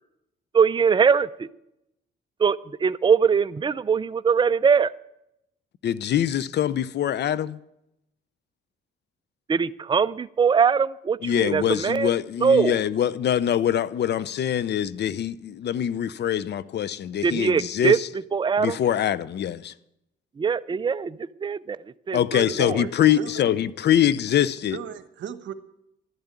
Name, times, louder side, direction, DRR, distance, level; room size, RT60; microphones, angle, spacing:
voice 1, 0.5-1.5 2.4-4.9 9.5-12.1 12.4-12.8 17.2-18.0 18.3-18.8 20.4-21.8 22.1-22.8, right 6 dB, 25° right, 0.5 m, -22 dB
voice 2, 5.8-7.6 11.2-18.1 18.6-19.7 22.1-24.8, left 10 dB, 60° left, 0.6 m, -24 dB
voice 3, 22.4-23.4 24.7-25.5, right 8 dB, 70° right, 1.1 m, -36 dB
12.0 x 10.5 x 8.2 m
cardioid pair, 90°, 20 cm